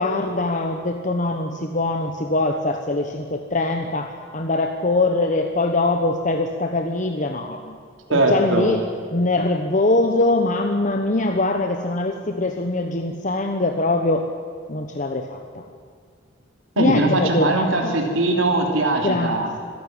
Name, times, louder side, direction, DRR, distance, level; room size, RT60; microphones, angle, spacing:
voice 1, 0.0-7.8 8.1-8.8 9.1-14.3 14.7-15.6 16.8-17.9 19.0-19.4, left 2 dB, 40° left, 4 dB, 1.1 m, -22 dB
voice 2, 8.1-8.7 16.8-19.5, right 2 dB, 90° right, 1 dB, 3.1 m, -20 dB
25.0 x 12.0 x 9.0 m, 2.1 s
head